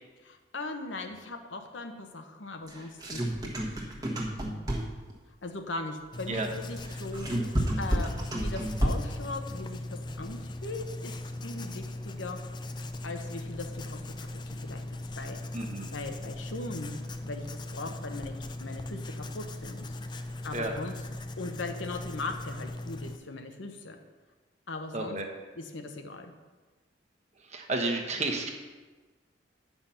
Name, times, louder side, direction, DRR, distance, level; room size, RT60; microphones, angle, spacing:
voice 1, 0.2-4.7 5.4-11.1 11.4-12.4 13.0-14.8 15.2-15.4 15.9-19.8 20.4-20.9 21.4-24.0 24.7-25.2 25.6-26.3, left 2 dB, 75° left, 5 dB, 1.0 m, -39 dB
sound 1, 2.7-5.1 6.8-9.2, equal, 20° right, 1.3 m, -30 dB
Writing, 6.1-23.2, left 1 dB, 25° left, 0.4 m, -39 dB
voice 2, 15.5-15.9 20.5-20.7 24.9-25.3 27.5-28.5, right 2 dB, 35° right, 3 dB, 1.1 m, -31 dB
9.7 x 5.7 x 5.7 m, 1.3 s
head